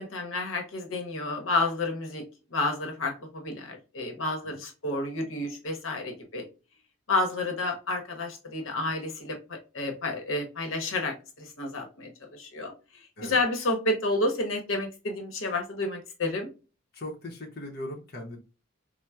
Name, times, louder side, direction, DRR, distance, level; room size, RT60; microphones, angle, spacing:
voice 1, 0.0-2.2 2.5-6.5 7.1-12.7 13.2-16.5, left 2 dB, 85° left, 0.9 m, -30 dB
voice 2, 16.9-18.4, left 1 dB, 55° left, 0.8 m, -39 dB
4.2 x 2.1 x 2.3 m
head